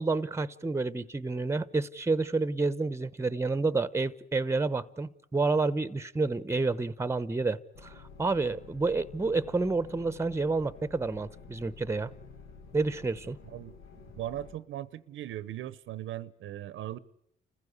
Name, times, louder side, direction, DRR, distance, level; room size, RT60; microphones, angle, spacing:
voice 1, 0.0-7.9 8.2-12.1 12.7-13.4, right 3 dB, 15° right, 0.8 m, -29 dB
sound 1, 7.7-14.5, left 5 dB, 90° left, 2.1 m, -50 dB
voice 2, 14.1-17.0, right 12 dB, 80° right, 0.8 m, -38 dB
28.5 x 15.5 x 9.7 m
cardioid pair, 90°, 20 cm